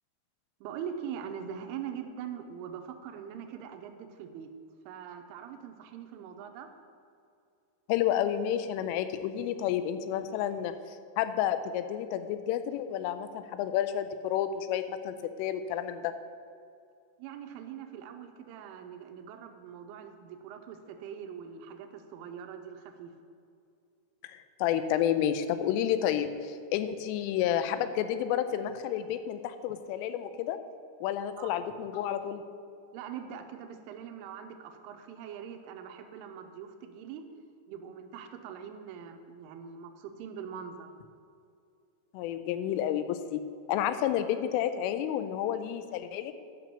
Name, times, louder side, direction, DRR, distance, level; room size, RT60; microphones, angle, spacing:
voice 1, 0.6-4.5 4.9-6.7 17.2-23.1 31.4-31.5 32.9-37.3 37.7-40.9, right 8 dB, 90° right, 6 dB, 3.2 m, -42 dB
voice 2, 7.9-16.1 24.2-30.6 31.0-32.4 42.1-43.4 43.7-46.3, left 10 dB, 90° left, 11 dB, 3.2 m, -30 dB
12.0 x 6.0 x 6.8 m, 2.4 s
omnidirectional pair, 5.6 m